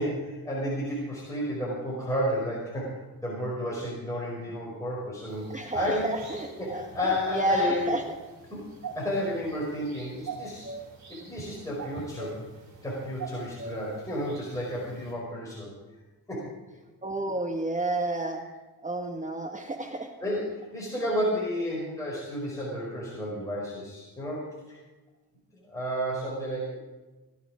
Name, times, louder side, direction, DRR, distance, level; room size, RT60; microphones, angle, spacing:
voice 1, 0.0-6.1 6.6-7.9 8.5-8.7 8.9-10.7 11.1-12.5 12.8-15.7 16.3-16.5 20.2-24.8 25.7-26.8, equal, 10° left, -5 dB, 5.0 m, -32 dB
sound 1, 5.3-15.1, right 3 dB, 50° right, 6.3 m, -43 dB
voice 2, 5.5-8.0 17.0-18.4 18.8-20.1, right 1 dB, 20° right, 3 dB, 1.5 m, -30 dB
17.5 x 12.0 x 5.0 m, 1.2 s
cardioid pair, 125°, 36 cm